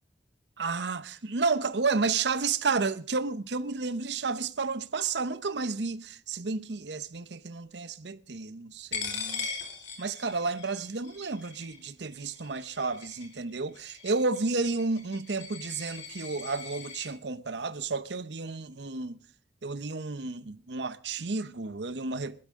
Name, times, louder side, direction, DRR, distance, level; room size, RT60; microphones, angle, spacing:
voice 1, 0.6-9.5 10.0-19.2 19.6-22.4, right 4 dB, 70° right, 0.8 m, -31 dB
Coin (dropping), 8.9-17.1, left 5 dB, 85° left, 4.1 m, -40 dB
21.5 x 12.0 x 3.6 m
head